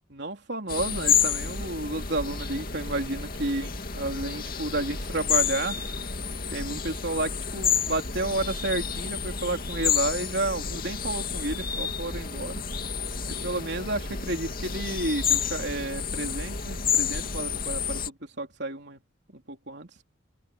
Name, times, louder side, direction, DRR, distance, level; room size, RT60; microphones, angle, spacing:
voice 1, 0.1-5.8 6.5-12.6 13.3-19.0 19.3-19.9, right 2 dB, 55° right, 3.9 m, -31 dB
sound 1, 0.7-18.1, left 7 dB, 45° left, 2.4 m, -30 dB
head